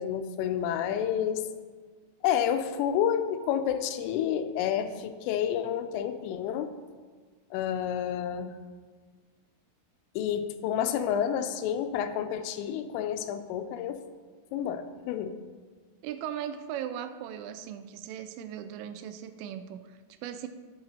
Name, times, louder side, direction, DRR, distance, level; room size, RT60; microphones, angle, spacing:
voice 1, 0.0-1.4 2.2-6.7 7.5-8.5 10.2-14.0 14.5-15.3, left 9 dB, 85° left, 9 dB, 3.2 m, -29 dB
voice 2, 16.0-20.5, right 9 dB, 85° right, 10 dB, 3.0 m, -38 dB
8.6 x 7.9 x 4.3 m, 1.5 s
omnidirectional pair, 5.7 m